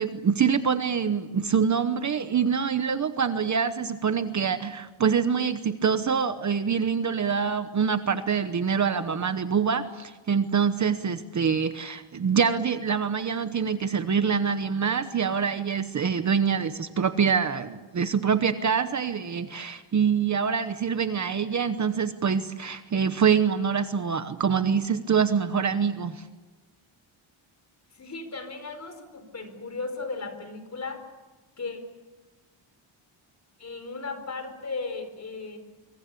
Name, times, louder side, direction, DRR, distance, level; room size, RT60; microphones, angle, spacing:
voice 1, 0.0-26.2, right 6 dB, 35° right, 10 dB, 1.0 m, -25 dB
voice 2, 27.9-31.1 31.6-31.8 33.6-35.6, left 3 dB, 35° left, 8 dB, 4.5 m, -36 dB
25.5 x 24.0 x 8.4 m, 1.2 s
wide cardioid pair, 170°, 49 cm